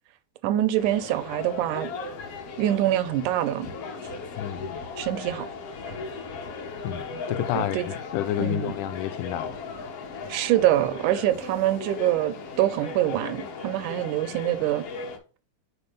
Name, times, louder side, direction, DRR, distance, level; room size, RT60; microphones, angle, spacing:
voice 1, 0.4-1.9 2.6-3.7 5.0-5.5 7.5-7.9 8.4-8.7 10.3-14.8, right 13 dB, 90° right, 2.1 m, -25 dB
sound 1, 0.8-15.2, left 4 dB, 60° left, 1.8 m, -37 dB
voice 2, 4.4-4.8 6.8-9.6, left 11 dB, 90° left, 2.1 m, -30 dB
5.2 x 4.2 x 5.1 m
omnidirectional pair, 3.5 m